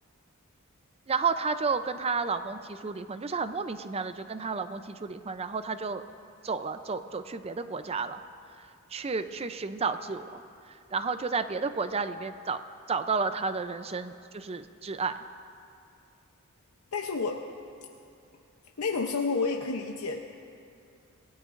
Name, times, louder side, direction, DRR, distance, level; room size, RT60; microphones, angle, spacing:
voice 1, 1.1-6.0 6.4-8.2 8.6-12.6 12.9-15.2, right 4 dB, 25° right, 10 dB, 0.5 m, -32 dB
voice 2, 16.9-17.4 18.8-20.2, left 4 dB, 85° left, 2 dB, 0.7 m, -30 dB
27.0 x 17.5 x 2.6 m, 2.5 s
head